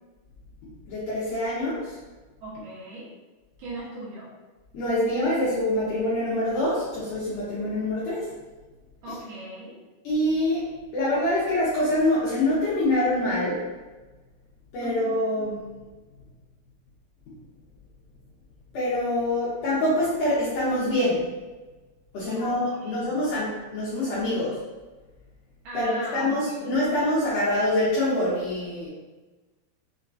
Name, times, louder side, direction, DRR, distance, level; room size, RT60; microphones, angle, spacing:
voice 1, 0.9-2.0 4.7-8.3 10.0-10.6 10.9-13.7 14.7-15.7 18.7-21.3 22.1-24.6 25.7-28.9, left 1 dB, 70° left, -10 dB, 2.1 m, -25 dB
voice 2, 2.4-3.1 3.6-4.3 9.0-9.8 14.8-15.2 22.3-22.6 22.8-23.1 25.6-26.7, right 1 dB, 70° right, -7 dB, 3.0 m, -38 dB
6.8 x 2.9 x 2.6 m, 1.2 s
omnidirectional pair, 4.8 m